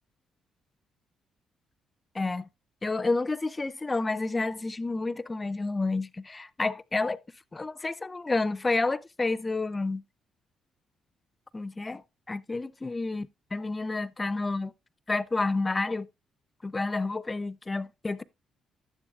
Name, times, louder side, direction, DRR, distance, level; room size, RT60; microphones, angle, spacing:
voice 1, 2.1-2.5 2.8-7.2 7.5-10.0 11.5-12.0 12.3-14.7 15.1-16.1 16.6-18.2, left 3 dB, 20° left, 0.4 m, -30 dB
12.0 x 9.9 x 2.3 m
cardioid pair, 90°, 0 cm